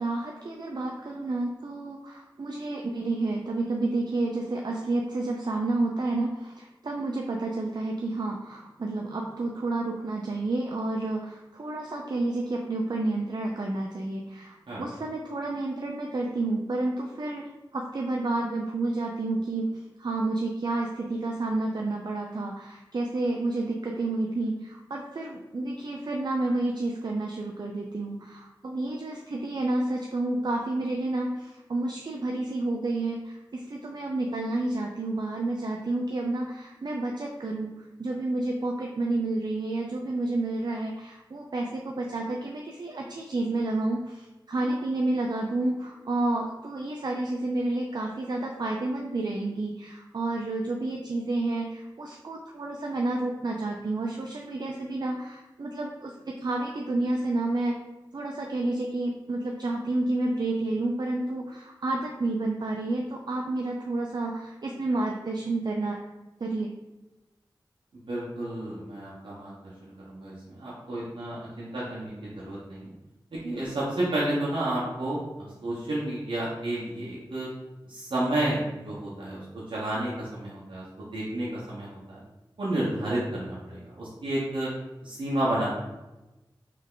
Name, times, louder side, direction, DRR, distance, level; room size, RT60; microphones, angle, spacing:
voice 1, 0.0-19.7 20.0-57.8 58.1-66.0 66.4-66.7, right 2 dB, 60° right, 0 dB, 0.4 m, -30 dB
voice 2, 68.1-69.5 69.8-72.9 73.3-77.5 77.9-82.2 82.6-84.7 85.0-85.7, right 1 dB, 85° right, -7 dB, 0.9 m, -31 dB
3.3 x 3.2 x 3.7 m, 1.0 s
cardioid pair, 45°, 8 cm